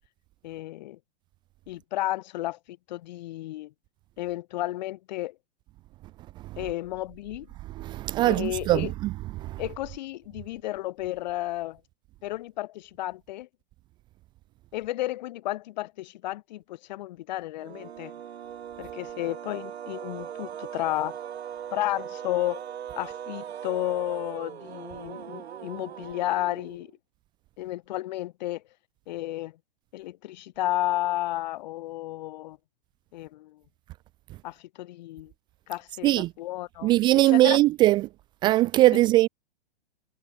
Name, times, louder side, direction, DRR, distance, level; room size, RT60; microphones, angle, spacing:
voice 1, 0.4-1.0 1.7-3.7 4.2-5.4 6.6-7.5 8.2-8.9 9.6-11.8 12.2-13.5 14.7-18.2 18.8-21.2 21.7-22.6 23.0-26.9 27.6-28.6 29.1-29.6 29.9-32.6 33.1-33.6 34.4-35.3 35.7-37.6, left 16 dB, 45° left, 1.7 m, -32 dB
voice 2, 7.8-9.1 9.4-9.6 36.0-36.3 36.8-38.1 38.4-39.3, right 16 dB, 15° right, 0.6 m, -21 dB
sound 1, 17.6-26.9, right 9 dB, 80° right, 5.9 m, -40 dB
hypercardioid pair, 165°, 31 cm